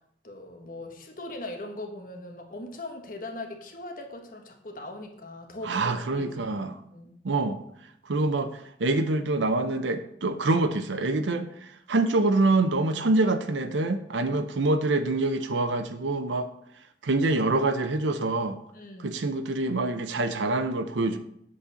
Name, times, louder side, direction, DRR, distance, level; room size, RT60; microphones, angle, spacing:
voice 1, 0.2-6.6 6.9-7.2 14.2-14.5 18.7-19.2, left 2 dB, 45° left, 3 dB, 1.1 m, -40 dB
voice 2, 5.6-6.8 7.2-7.6 8.1-16.5 17.0-18.6 19.0-21.2, right 2 dB, 85° right, 8 dB, 0.6 m, -26 dB
8.4 x 4.1 x 6.8 m, 0.71 s
head